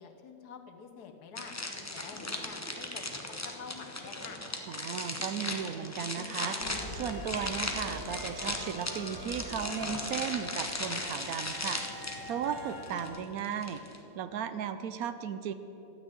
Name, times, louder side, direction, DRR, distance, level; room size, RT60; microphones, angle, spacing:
voice 1, 0.0-1.5 1.9-4.4, left 6 dB, 80° left, 5 dB, 1.5 m, -48 dB
sound 1, 1.4-14.0, left 2 dB, 15° left, 0.6 m, -37 dB
voice 2, 4.7-6.6 6.9-13.8 14.1-15.5, right 8 dB, 70° right, 11 dB, 1.0 m, -36 dB
sound 2, 6.6-13.1, left 1 dB, 90° right, 2.7 m, -44 dB
12.5 x 6.3 x 8.9 m, 3.0 s
omnidirectional pair, 1.7 m